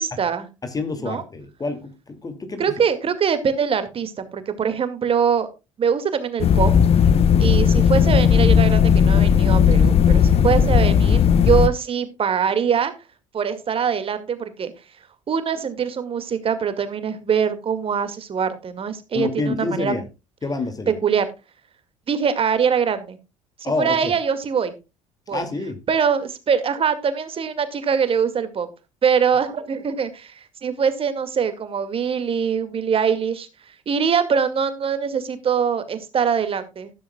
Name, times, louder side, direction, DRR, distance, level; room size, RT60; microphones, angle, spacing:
voice 1, 0.0-0.5 1.0-1.2 2.6-5.5 5.8-6.7 7.4-12.9 13.3-14.7 15.3-19.9 21.0-21.2 22.1-23.2 23.6-24.7 25.3-25.5 25.9-28.7 29.0-30.3 30.6-33.5 33.9-36.9, right 7 dB, 35° right, 2.2 m, -23 dB
voice 2, 0.6-2.7 19.1-20.0 20.4-21.0 23.6-24.1 25.3-25.8, left 3 dB, 20° left, 2.5 m, -27 dB
sound 1, 6.4-11.7, left 7 dB, 35° left, 0.9 m, -15 dB
14.0 x 12.5 x 2.3 m
figure-of-eight pair, 60°, 17 cm